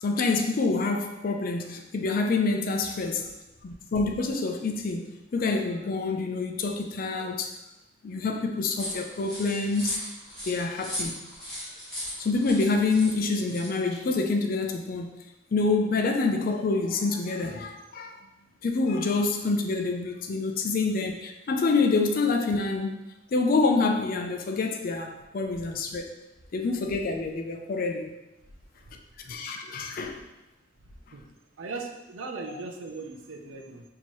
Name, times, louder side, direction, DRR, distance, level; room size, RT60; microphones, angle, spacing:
voice 1, 0.0-3.3 3.6-7.5 8.0-10.0 10.5-11.1 12.2-15.1 15.5-18.2 18.6-22.9 23.3-26.1 26.5-28.1 29.2-30.2, left 3 dB, 45° left, 3 dB, 0.4 m, -27 dB
sound 1, 8.8-14.0, equal, 5° left, 1.3 m, -37 dB
voice 2, 31.6-33.8, right 3 dB, 80° right, 3 dB, 0.5 m, -38 dB
4.4 x 2.8 x 3.0 m, 0.95 s
head